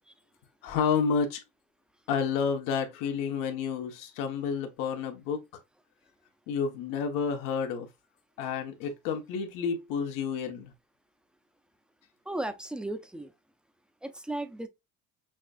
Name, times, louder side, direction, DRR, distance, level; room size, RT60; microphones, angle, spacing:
voice 1, 0.6-1.4 2.1-5.4 6.5-7.9 8.4-10.7, left 6 dB, 75° left, 1.3 m, -30 dB
voice 2, 12.3-13.3 14.0-14.7, right 1 dB, 5° right, 0.6 m, -35 dB
6.1 x 2.4 x 2.4 m
supercardioid pair, 110°, 32 cm